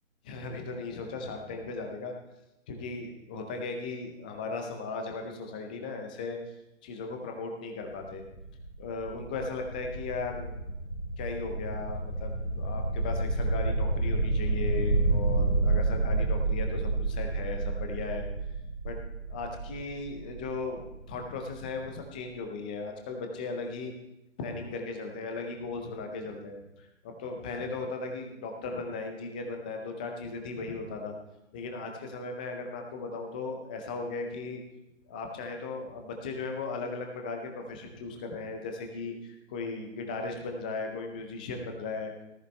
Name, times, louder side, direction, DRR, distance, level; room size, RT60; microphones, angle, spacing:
voice 1, 0.2-2.1 2.7-6.5 6.8-8.2 8.8-10.6 11.2-18.3 18.6-19.0 19.3-23.9 24.4-31.1 31.5-34.6 35.1-42.1, left 3 dB, 5° left, 3 dB, 0.5 m, -37 dB
sound 1, 7.9-21.6, right 2 dB, 90° left, 3.3 m, -30 dB
18.0 x 13.5 x 3.2 m, 0.92 s
figure-of-eight pair, 140°, 39 cm